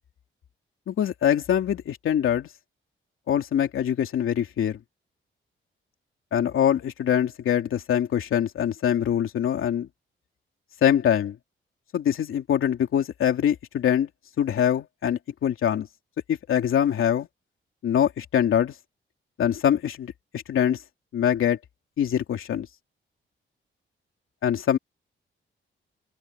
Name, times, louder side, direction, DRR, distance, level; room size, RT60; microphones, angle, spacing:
voice 1, 0.9-2.5 3.3-4.8 6.3-9.9 10.8-11.4 11.9-14.1 14.4-15.9 16.3-17.3 17.8-18.7 19.4-20.8 21.1-21.6 22.0-22.7 24.4-24.8, left 9 dB, 85° left, 2.8 m, -23 dB
open air
wide cardioid pair, 160°, 21 cm